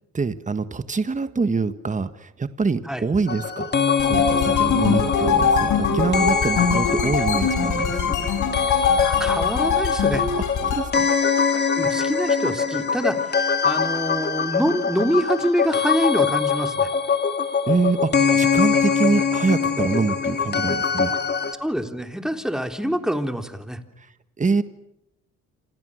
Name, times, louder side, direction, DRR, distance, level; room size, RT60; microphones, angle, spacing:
voice 1, 0.1-3.7 4.0-8.3 10.7-11.1 17.7-21.1 24.0-24.1 24.4-24.6, right 4 dB, 25° right, 12 dB, 1.6 m, -25 dB
sound 1, 3.3-21.5, left 6 dB, 35° left, 2.8 m, -23 dB
sound 2, 4.0-10.9, left 5 dB, 80° left, 7.3 m, -22 dB
voice 2, 9.0-10.3 11.7-16.9 21.5-23.8, equal, ahead, 7 dB, 3.4 m, -25 dB
28.0 x 28.0 x 6.5 m, 0.86 s
cardioid pair, 90°, 30 cm